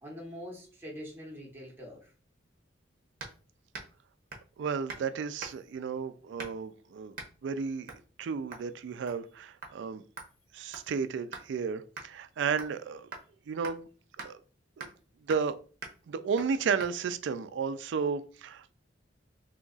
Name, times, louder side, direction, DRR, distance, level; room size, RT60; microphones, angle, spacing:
voice 1, 0.0-2.1, equal, 10° right, 0.9 m, -44 dB
sound 1, 3.2-3.4 3.7-4.0 4.3-4.5 4.9-5.1 5.4-5.7 6.4-6.7 7.1-7.3 7.9-8.1 8.5-8.7 9.1-9.3 9.6-9.7 10.2-11.5 12.0-12.1 12.6-12.8 13.1-13.3 13.6-13.8 14.2-14.3 14.8-15.0 15.3-15.5 15.8-16.0 16.4-16.5 16.8-16.9, right 3 dB, 50° right, 0.7 m, -44 dB
voice 2, 4.6-7.2 7.4-7.9 8.2-10.0 10.5-13.1 13.5-13.9 14.2-14.4 14.8-14.9 15.2-15.6 16.1-18.7, right 5 dB, 70° right, 0.3 m, -33 dB
2.8 x 2.3 x 3.9 m
head